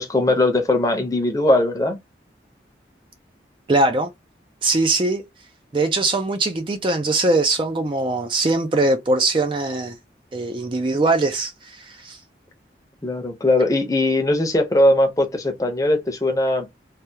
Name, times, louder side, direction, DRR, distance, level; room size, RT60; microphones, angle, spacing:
voice 1, 0.0-2.0 13.0-16.8, left 1 dB, 20° left, 0.7 m, -20 dB
voice 2, 3.7-4.1 4.6-5.2 5.7-10.0 10.3-12.2, right 2 dB, 30° right, 0.4 m, -21 dB
3.3 x 2.3 x 2.7 m
head